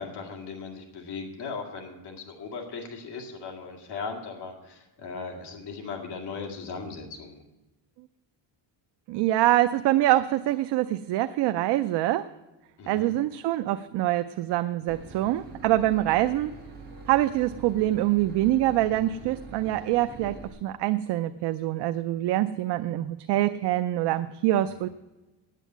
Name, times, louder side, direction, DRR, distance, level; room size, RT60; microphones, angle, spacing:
voice 1, 0.0-7.4 12.8-13.1, left 4 dB, 55° left, 2 dB, 2.2 m, -38 dB
voice 2, 9.1-12.3 12.9-16.5 17.1-24.9, right 14 dB, 60° right, 10 dB, 0.5 m, -25 dB
Boat Water vehicle / Engine, 14.9-20.5, right 3 dB, 20° right, 1.8 m, -44 dB
9.1 x 8.2 x 9.2 m, 1.1 s
cardioid pair, 175°, 48 cm